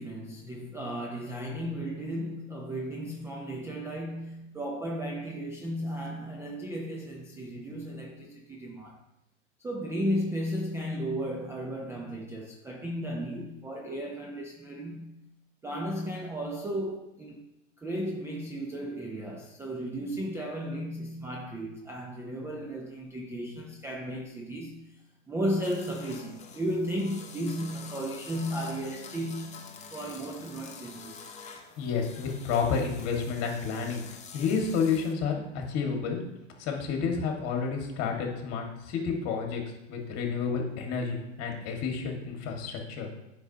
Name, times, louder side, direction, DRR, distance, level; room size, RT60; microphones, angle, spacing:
voice 1, 0.0-9.0 9.6-15.2 15.6-17.4 17.8-31.2, equal, 5° right, 0.4 m, -35 dB
sound 1, 25.6-35.2, left 6 dB, 20° left, 0.7 m, -47 dB
voice 2, 31.8-36.2 36.6-39.6 39.9-43.1, left 5 dB, 40° left, 1.7 m, -30 dB
8.9 x 5.2 x 2.8 m
hypercardioid pair, 110°, 39 cm